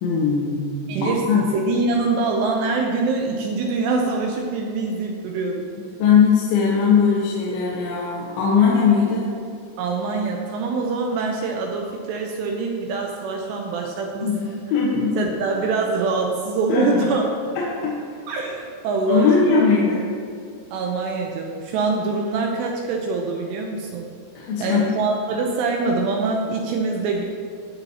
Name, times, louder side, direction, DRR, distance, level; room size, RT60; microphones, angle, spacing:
voice 1, 0.0-1.4 6.0-9.2 14.2-14.4 14.7-15.2 16.7-17.1 17.8-17.9 19.1-20.0 24.4-24.8, left 6 dB, 75° left, -5 dB, 3.3 m, -19 dB
voice 2, 0.9-5.7 9.8-14.6 15.1-17.3 18.3-19.5 20.7-24.1 24.6-27.2, right 3 dB, 80° right, 1 dB, 2.5 m, -24 dB
18.0 x 7.0 x 2.8 m, 2.3 s
omnidirectional pair, 5.7 m